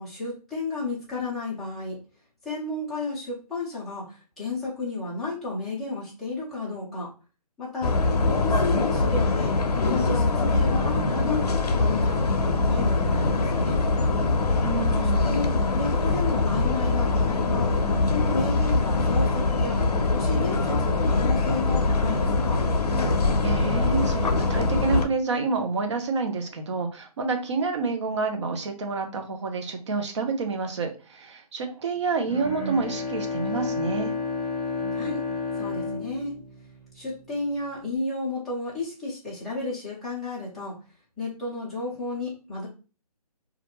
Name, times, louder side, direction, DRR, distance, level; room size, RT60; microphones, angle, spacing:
voice 1, 0.0-2.0 2.4-7.1 7.6-11.4 11.7-12.3 12.6-13.8 15.0-17.8 18.1-19.8 20.1-22.6 34.9-35.2 35.6-36.3 36.9-40.8 41.2-42.7, left 3 dB, ahead, -9 dB, 0.4 m, -32 dB
sound 1, 7.8-25.1, left 3 dB, 75° left, 0.5 m, -23 dB
voice 2, 14.6-15.4 23.4-34.1, right 4 dB, 45° right, 4 dB, 0.6 m, -28 dB
Bowed string instrument, 32.3-37.2, left 4 dB, 20° right, 1.2 m, -31 dB
2.4 x 2.2 x 2.9 m, 0.34 s
figure-of-eight pair, 150°, 20 cm